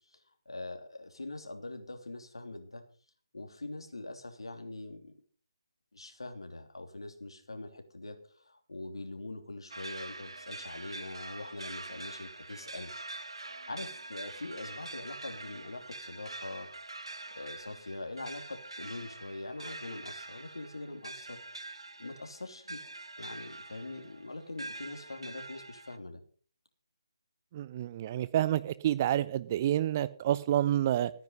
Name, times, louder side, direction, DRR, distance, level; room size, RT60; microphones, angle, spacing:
voice 1, 0.1-2.8 3.3-5.1 5.9-13.4 13.7-16.7 17.3-21.4 21.7-22.8 23.2-26.2, left 2 dB, 75° left, 3.0 m, -43 dB
sound 1, 9.7-26.0, right 2 dB, 80° right, 1.0 m, -45 dB
voice 2, 27.5-31.1, right 12 dB, 30° right, 0.8 m, -28 dB
15.0 x 9.7 x 5.6 m
figure-of-eight pair, 145°, 3 cm